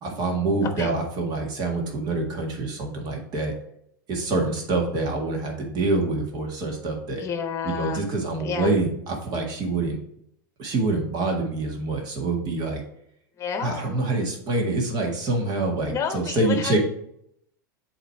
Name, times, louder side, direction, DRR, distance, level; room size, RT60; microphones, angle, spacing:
voice 1, 0.0-3.5 4.1-7.2 7.6-10.0 10.6-12.8 13.6-16.8, right 2 dB, 40° right, 1 dB, 1.7 m, -26 dB
voice 2, 7.2-8.1 8.4-8.7 13.4-13.9 15.9-16.8, left 6 dB, 25° left, 6 dB, 1.0 m, -30 dB
7.6 x 3.1 x 4.6 m, 0.73 s
hypercardioid pair, 100°, 10 cm